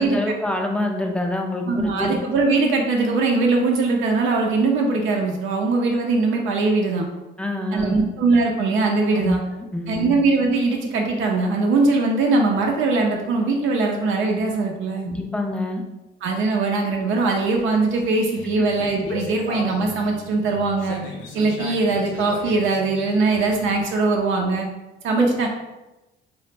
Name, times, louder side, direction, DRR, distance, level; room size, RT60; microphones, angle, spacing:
voice 1, 0.0-2.2 7.4-8.1 9.1-9.4 9.7-10.2 15.0-15.8 25.2-25.3, left 1 dB, 5° left, 2 dB, 0.3 m, -26 dB
voice 2, 1.7-7.1 7.7-9.4 9.9-15.1 16.2-21.0 21.3-24.7 25.0-25.5, right 3 dB, 75° right, 1 dB, 0.4 m, -21 dB
sound 1, 17.2-23.9, left 3 dB, 85° left, 0.4 m, -37 dB
2.0 x 2.0 x 3.1 m, 1.0 s
cardioid pair, 90°, 20 cm